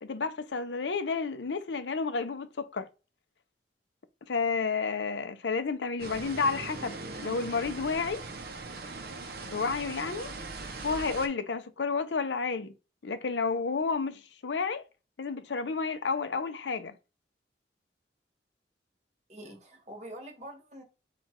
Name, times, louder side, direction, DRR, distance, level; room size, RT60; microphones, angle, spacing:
voice 1, 0.0-2.9 4.2-8.3 9.4-10.3 10.8-12.7 13.0-14.8 15.2-16.9, left 4 dB, 80° left, 0.6 m, -31 dB
sound 1, 6.0-11.3, right 3 dB, 55° right, 0.7 m, -40 dB
voice 2, 19.3-20.8, right 1 dB, 40° right, 1.3 m, -45 dB
4.7 x 2.4 x 4.4 m
head